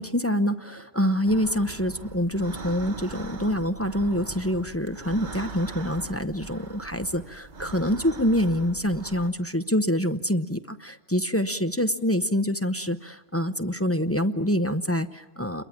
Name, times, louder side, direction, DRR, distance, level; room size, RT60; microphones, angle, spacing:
voice 1, 0.0-15.6, equal, 15° left, 8 dB, 0.6 m, -26 dB
sound 1, 1.3-9.3, right 3 dB, 35° right, 1.3 m, -41 dB
29.0 x 22.5 x 7.3 m, 1.1 s
omnidirectional pair, 1.4 m